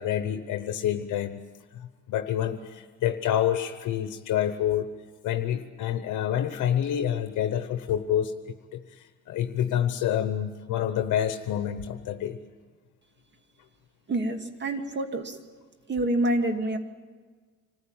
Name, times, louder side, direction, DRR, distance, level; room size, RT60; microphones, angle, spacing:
voice 1, 0.0-1.4 1.7-4.9 5.2-12.4, left 10 dB, 80° left, 8 dB, 1.0 m, -28 dB
voice 2, 14.1-15.4 15.9-16.8, right 1 dB, 35° right, 6 dB, 2.4 m, -27 dB
25.5 x 15.0 x 8.9 m, 1.5 s
cardioid pair, 90°, 30 cm